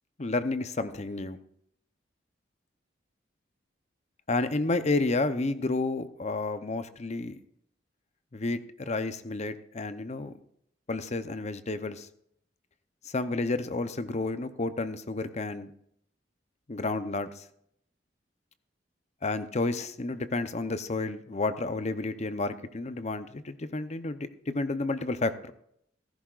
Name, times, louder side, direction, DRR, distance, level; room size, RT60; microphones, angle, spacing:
voice 1, 0.2-1.4 4.3-7.4 8.3-10.4 10.9-12.1 13.0-15.7 16.7-17.4 19.2-25.3, left 3 dB, 40° left, 11 dB, 0.7 m, -31 dB
15.5 x 14.0 x 2.5 m, 0.70 s
head